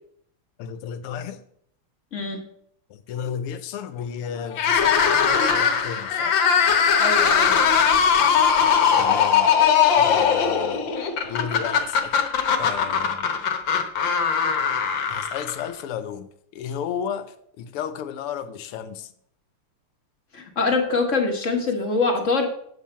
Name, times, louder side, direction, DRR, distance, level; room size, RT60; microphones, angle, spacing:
voice 1, 0.6-1.4 2.9-6.3 9.0-9.5 10.0-10.8 11.3-12.2 12.6-13.3 15.1-19.1, left 8 dB, 85° left, 1.7 m, -33 dB
sound 1, 4.5-15.8, left 7 dB, 65° left, 1.7 m, -20 dB
voice 2, 7.0-7.6 20.3-22.5, left 3 dB, 40° left, 1.5 m, -24 dB
9.1 x 7.3 x 4.4 m
omnidirectional pair, 2.4 m